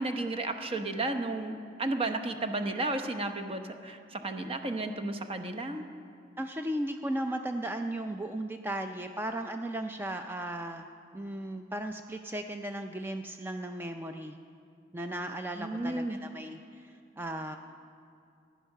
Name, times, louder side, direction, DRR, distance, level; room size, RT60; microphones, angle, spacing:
voice 1, 0.0-5.8 15.5-16.2, right 2 dB, 30° right, 7 dB, 0.9 m, -33 dB
voice 2, 6.4-10.9 11.1-14.4 14.9-17.6, right 1 dB, 10° right, 5 dB, 0.4 m, -36 dB
15.0 x 10.0 x 6.6 m, 2.5 s
head